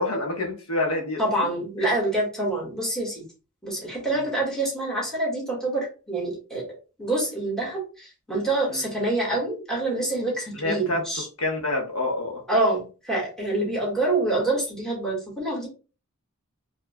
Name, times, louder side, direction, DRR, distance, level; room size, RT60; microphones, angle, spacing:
voice 1, 0.0-1.2 1.8-1.9 4.1-4.2 8.7-8.8 10.5-11.0 11.4-12.4, left 2 dB, 85° left, 1 dB, 1.2 m, -27 dB
voice 2, 1.2-3.2 3.6-6.6 7.0-11.3 12.5-15.7, right 2 dB, 5° left, -5 dB, 1.8 m, -26 dB
4.7 x 3.1 x 2.2 m, 0.34 s
head